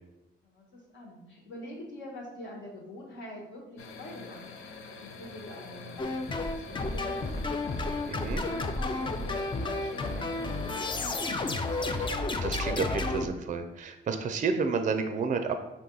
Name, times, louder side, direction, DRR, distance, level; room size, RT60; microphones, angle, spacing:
voice 1, 0.4-7.7 8.2-12.0, left 1 dB, 70° left, -1 dB, 1.4 m, -45 dB
sound 1, 3.8-12.2, left 4 dB, 90° left, 0.5 m, -45 dB
sound 2, 6.0-13.3, left 2 dB, 25° left, 0.4 m, -31 dB
voice 2, 8.1-8.4 12.0-12.2 12.4-15.5, right 5 dB, 40° right, 7 dB, 0.4 m, -30 dB
5.2 x 2.6 x 3.8 m, 0.95 s
cardioid pair, 100°, 20 cm